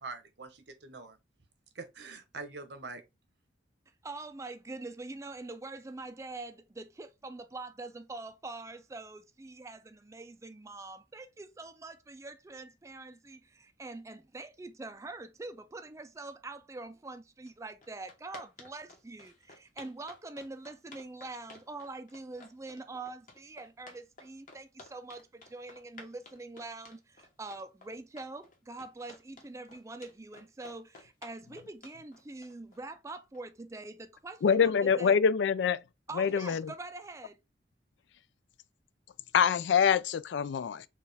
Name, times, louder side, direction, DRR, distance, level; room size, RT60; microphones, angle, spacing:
voice 1, 0.0-1.2 1.8-3.0, right 4 dB, 70° right, 0.9 m, -44 dB
voice 2, 4.0-35.2 36.1-37.4, right 2 dB, 15° right, 0.4 m, -44 dB
sound 1, 17.5-17.6 17.8-33.4, left 3 dB, 45° left, 1.2 m, -53 dB
voice 3, 34.4-35.8 36.2-36.7 39.3-40.8, left 7 dB, 75° left, 0.3 m, -25 dB
4.5 x 2.4 x 3.3 m
head